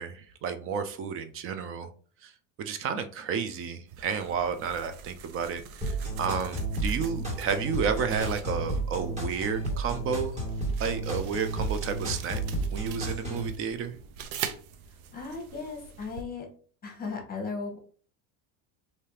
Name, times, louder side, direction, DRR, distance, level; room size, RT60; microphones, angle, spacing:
voice 1, 0.0-1.9 2.2-2.3 2.6-10.4 10.8-12.4 12.7-13.9, right 6 dB, 35° right, 0.4 m, -31 dB
sound 1, 3.9-16.2, right 7 dB, 80° right, 0.6 m, -44 dB
sound 2, 5.8-13.5, right 2 dB, 15° right, 1.4 m, -32 dB
voice 2, 15.1-16.5 16.8-17.8, left 4 dB, 20° left, 1.0 m, -36 dB
3.3 x 2.8 x 2.8 m
supercardioid pair, 120°, 42 cm